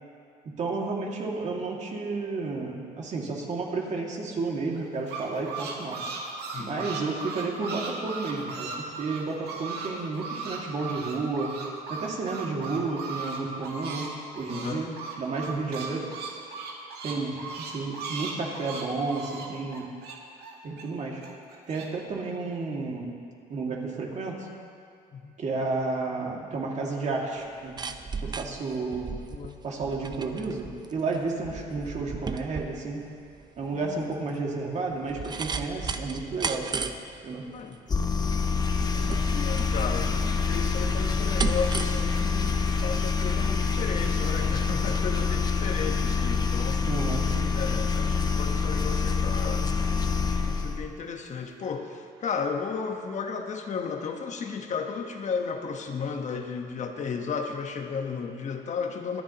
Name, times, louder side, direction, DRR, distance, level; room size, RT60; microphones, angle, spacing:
voice 1, 0.4-6.0 6.6-11.6 11.9-14.1 14.4-16.1 17.0-19.9 20.6-21.2 21.7-23.2 23.5-24.5 25.4-27.8 28.2-29.2 29.6-33.0 33.6-36.8 37.2-37.5 46.8-47.5, right 3 dB, 45° right, -1 dB, 2.2 m, -32 dB
sound 1, 4.7-9.9 10.2-14.1 14.3-20.8 21.2-21.9, right 4 dB, 75° right, 2.0 m, -37 dB
voice 2, 6.5-6.9 14.5-14.9 25.1-25.4 29.3-29.6 33.7-34.0 36.0-36.1 37.5-37.8 38.9-46.8 47.5-49.7 50.4-59.2, left 5 dB, 45° left, 4 dB, 1.2 m, -34 dB
sound 2, 27.4-45.1 45.4-45.5, right 5 dB, 25° right, 0.6 m, -36 dB
sound 3, 37.9-50.9, left 5 dB, 25° left, 0.8 m, -26 dB
24.5 x 9.9 x 3.0 m, 2.4 s
cardioid pair, 110°, 17 cm